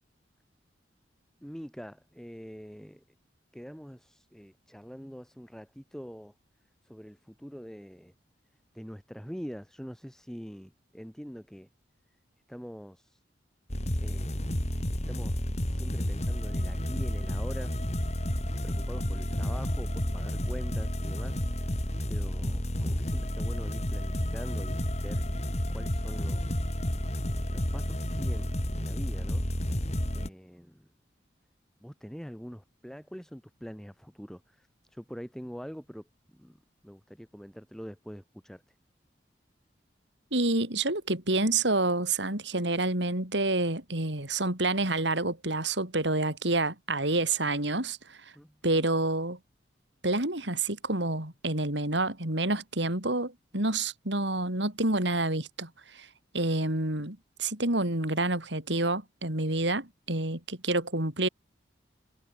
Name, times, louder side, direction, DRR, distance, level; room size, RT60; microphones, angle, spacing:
voice 1, 1.4-3.0 3.5-6.3 6.8-8.1 8.7-11.7 12.5-13.2 14.0-14.6 14.9-17.8 18.6-25.3 25.7-26.7 27.2-29.4 30.1-30.9 31.8-36.6 36.8-38.7 48.3-48.6, equal, 5° left, 5.7 m, -44 dB
sound 1, 13.7-30.3, equal, 35° left, 3.0 m, -31 dB
voice 2, 40.3-48.3 48.6-49.4 50.0-56.1 56.3-61.3, right 2 dB, 75° right, 5.0 m, -28 dB
head